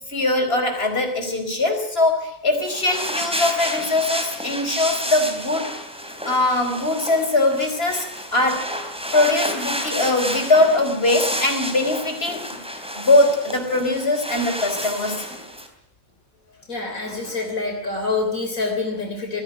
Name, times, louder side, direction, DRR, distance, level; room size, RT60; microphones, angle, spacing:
voice 1, 0.1-5.7 6.2-8.1 8.3-8.7 9.1-12.4 12.9-15.2, left 2 dB, 40° left, 5 dB, 5.0 m, -21 dB
sound 1, 2.5-15.7, equal, 5° right, 3.4 m, -30 dB
voice 2, 16.7-19.4, left 3 dB, 70° left, 2 dB, 3.8 m, -26 dB
21.0 x 16.0 x 9.9 m, 0.78 s
omnidirectional pair, 1.5 m